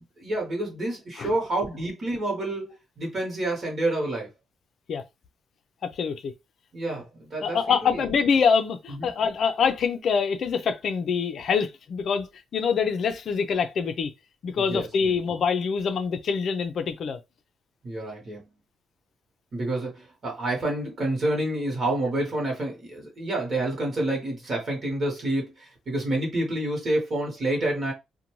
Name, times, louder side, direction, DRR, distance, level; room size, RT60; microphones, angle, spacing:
voice 1, 0.2-4.3 6.7-8.0 9.0-9.1 14.6-15.1 17.8-18.5 19.5-27.9, right 1 dB, 40° right, 1.1 m, -28 dB
voice 2, 5.8-6.3 6.9-7.0 7.4-14.1 14.4-17.2, left 6 dB, 55° left, 0.4 m, -25 dB
2.6 x 2.2 x 3.0 m
cardioid pair, 130°, 0 cm